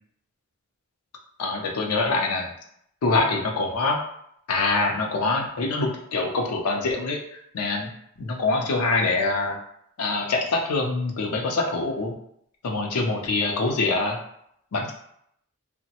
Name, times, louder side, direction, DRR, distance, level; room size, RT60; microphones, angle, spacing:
voice 1, 1.4-2.5 3.0-4.0 4.5-7.2 7.5-7.9 8.2-9.6 10.0-12.1 12.6-14.2 14.7-14.9, left 3 dB, 90° left, 1 dB, 0.5 m, -24 dB
2.9 x 2.1 x 2.8 m, 0.71 s
head